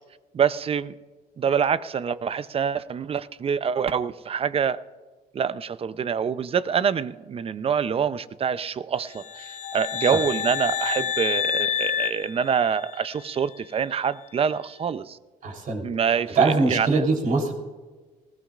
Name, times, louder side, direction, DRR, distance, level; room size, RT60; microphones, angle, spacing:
voice 1, 0.3-0.9 1.4-4.8 5.3-15.2 15.8-17.1, right 7 dB, 35° right, 14 dB, 0.6 m, -26 dB
sound 1, 9.1-13.1, left 9 dB, 45° left, 0.6 m, -28 dB
voice 2, 15.4-17.5, right 3 dB, 55° right, 1 dB, 3.6 m, -23 dB
19.5 x 17.5 x 2.5 m, 1.3 s
cardioid pair, 110°, 17 cm